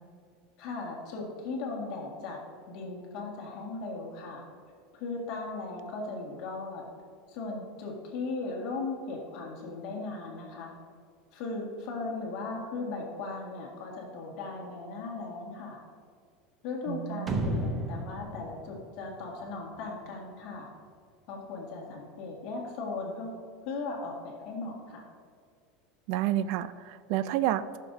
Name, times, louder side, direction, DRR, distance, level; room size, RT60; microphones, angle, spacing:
voice 1, 0.6-2.4 2.7-4.4 4.9-6.8 7.3-10.7 11.3-15.8 16.6-20.7 21.3-23.3 23.7-25.0, left 3 dB, 50° left, -1 dB, 1.8 m, -37 dB
voice 2, 16.9-17.5 26.1-27.8, right 12 dB, 50° right, 13 dB, 0.4 m, -30 dB
sound 1, 17.3-19.8, right 1 dB, 15° right, 0.8 m, -33 dB
14.5 x 6.8 x 2.7 m, 2.1 s
supercardioid pair, 170°, 0 cm